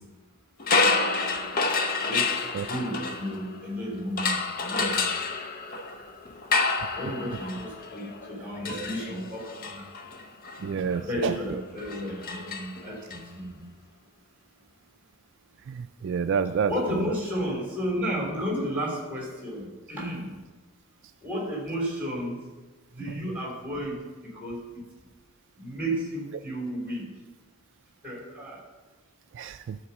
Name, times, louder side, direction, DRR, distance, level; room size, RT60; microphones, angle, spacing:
sound 1, 0.6-3.7 4.2-13.2, left 4 dB, 45° left, 0.7 m, -29 dB
voice 1, 2.0-5.0 6.9-9.9 10.9-13.6 16.7-20.3 21.2-22.4 22.9-24.8 25.6-27.1 28.0-28.6, equal, 10° right, -2 dB, 3.1 m, -33 dB
voice 2, 10.6-11.3 15.7-16.7 17.0-17.1 29.3-29.8, right 6 dB, 60° right, 10 dB, 0.3 m, -29 dB
11.5 x 4.5 x 7.0 m, 1.3 s
head